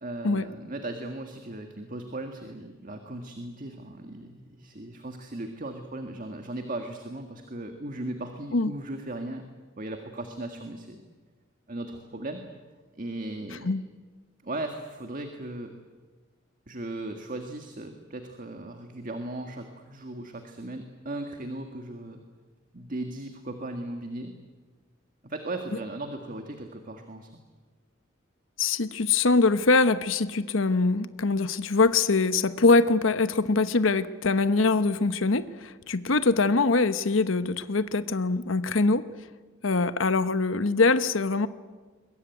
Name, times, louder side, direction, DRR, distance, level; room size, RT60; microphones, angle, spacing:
voice 1, 0.0-9.4 9.7-11.0 11.7-12.4 13.0-13.7 14.4-15.7 16.7-22.2 22.7-24.3 25.2-27.3, right 2 dB, 40° right, 5 dB, 1.8 m, -37 dB
voice 2, 28.6-39.1 39.6-41.5, left 3 dB, 80° left, 13 dB, 1.0 m, -23 dB
22.5 x 21.5 x 9.3 m, 1.4 s
head